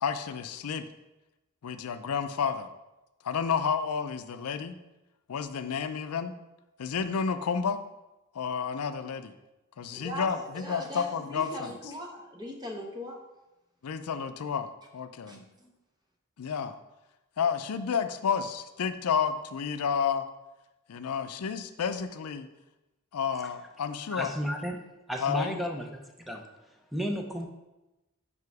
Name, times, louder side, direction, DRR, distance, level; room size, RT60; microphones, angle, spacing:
voice 1, 0.0-0.8 1.6-2.7 3.2-4.7 5.3-6.3 6.8-7.8 8.3-9.3 9.8-11.8 13.8-14.7 14.9-15.4 16.4-16.7 17.4-20.2 20.9-22.5 23.1-24.3 25.2-25.6, left 6 dB, 85° left, 10 dB, 0.5 m, -30 dB
voice 2, 9.9-13.2 15.3-15.7, equal, 20° right, 1 dB, 0.9 m, -40 dB
voice 3, 24.1-24.8 25.1-26.0 26.3-26.4 26.9-27.5, equal, ahead, 2 dB, 0.6 m, -32 dB
5.5 x 4.8 x 4.7 m, 1.0 s
head